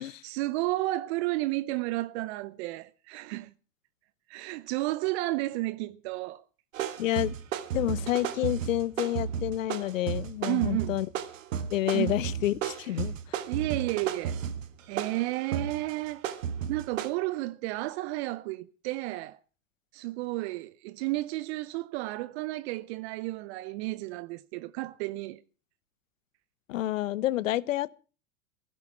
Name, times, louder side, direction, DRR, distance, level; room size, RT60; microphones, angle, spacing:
voice 1, 0.2-3.5 4.3-6.4 10.5-11.0 11.9-12.2 13.5-14.4 14.9-16.3 16.7-19.4 19.9-25.4, right 19 dB, 55° right, 0.8 m, -32 dB
sound 1, 6.7-17.1, right 8 dB, 75° right, 1.7 m, -34 dB
voice 2, 7.0-7.3 7.7-11.1 11.7-13.1 26.7-27.9, left 14 dB, 75° left, 0.8 m, -29 dB
16.0 x 12.0 x 5.9 m
hypercardioid pair, 90°, 39 cm